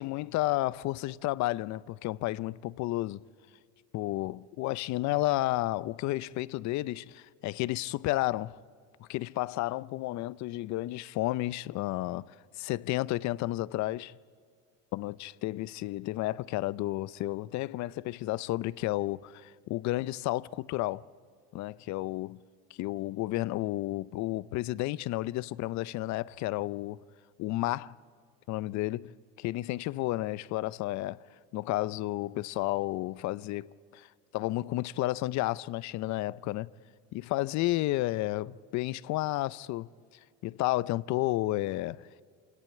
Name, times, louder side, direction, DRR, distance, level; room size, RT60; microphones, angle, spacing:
voice 1, 0.0-3.2 3.9-8.6 9.1-12.3 12.6-14.2 14.9-21.0 21.5-22.4 22.8-27.0 27.4-27.9 28.5-29.1 29.4-31.2 31.5-34.1 34.3-36.7 37.1-39.9 40.4-42.2, left 17 dB, 60° left, 0.6 m, -32 dB
27.0 x 18.0 x 8.9 m
supercardioid pair, 100°, 31 cm